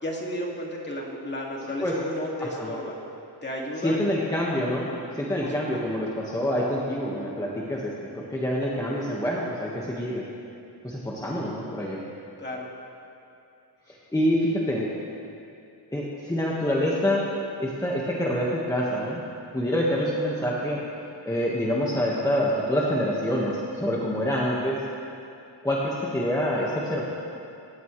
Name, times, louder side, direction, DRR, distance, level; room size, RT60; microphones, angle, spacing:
voice 1, 0.0-2.9 3.4-4.0 5.4-5.8 12.4-12.7, left 1 dB, 25° left, -2 dB, 2.3 m, -33 dB
voice 2, 2.4-2.7 3.8-10.2 10.8-12.0 14.1-14.8 15.9-17.2 17.6-19.2 19.5-20.8 21.2-24.8 25.6-27.0, equal, 10° left, -5 dB, 1.6 m, -26 dB
27.5 x 15.0 x 3.3 m, 2.7 s
wide cardioid pair, 170°, 42 cm